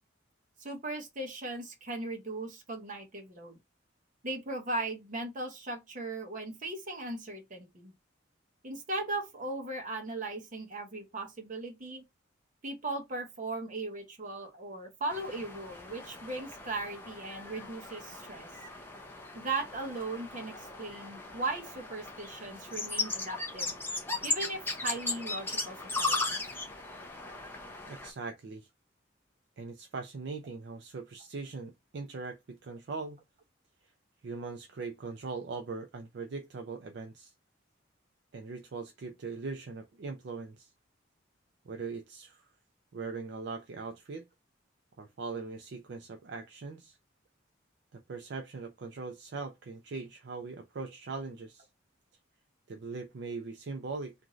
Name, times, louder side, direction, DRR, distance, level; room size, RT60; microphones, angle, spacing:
voice 1, 0.6-3.6 4.2-7.9 8.6-12.0 12.6-18.5 19.3-23.7 24.2-26.4, right 2 dB, 40° right, 0.8 m, -38 dB
sound 1, 15.1-28.1, left 2 dB, 10° left, 0.5 m, -37 dB
voice 2, 27.9-28.7 29.6-33.2 34.2-37.3 38.3-40.7 41.7-42.5 42.9-44.3 45.0-47.0 47.9-51.7 52.7-54.1, right 4 dB, 60° right, 0.4 m, -40 dB
3.0 x 2.5 x 2.4 m
head